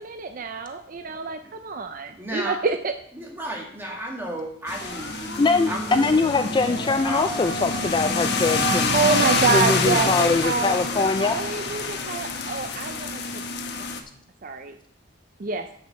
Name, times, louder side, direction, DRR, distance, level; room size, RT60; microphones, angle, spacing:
voice 1, 0.0-2.9 8.6-13.2 14.4-14.7 15.4-15.7, right 4 dB, 45° right, 8 dB, 0.5 m, -27 dB
voice 2, 2.2-2.5 3.1-5.2 5.7-7.5, right 1 dB, 10° right, -2 dB, 2.1 m, -34 dB
sound 1, 4.7-14.0, left 3 dB, 60° left, 1.0 m, -27 dB
sound 2, 4.8-12.0, right 2 dB, 60° right, 4.2 m, -35 dB
voice 3, 5.4-8.9 9.5-11.4, left 3 dB, 25° left, 8 dB, 0.3 m, -22 dB
7.6 x 7.1 x 6.2 m, 0.67 s
head